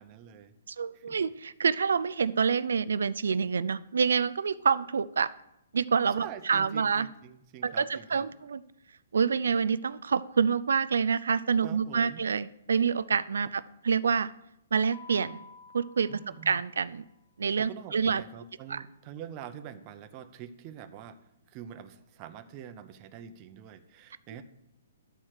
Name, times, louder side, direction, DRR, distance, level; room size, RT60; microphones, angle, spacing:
voice 1, 0.0-0.5 0.9-1.2 6.2-8.3 11.6-12.2 16.1-16.6 17.6-21.2 21.5-24.4, right 9 dB, 25° right, 9 dB, 0.7 m, -45 dB
voice 2, 0.7-5.3 5.7-7.1 7.6-8.6 9.1-14.3 14.7-15.5 15.7-16.2 16.5-17.0 17.4-18.2 18.7-18.8, right 6 dB, 85° right, 16 dB, 0.4 m, -27 dB
Mallet percussion, 14.9-17.0, left 4 dB, 35° left, 1.8 m, -51 dB
11.5 x 4.4 x 6.5 m, 0.82 s
hypercardioid pair, 160°, 0 cm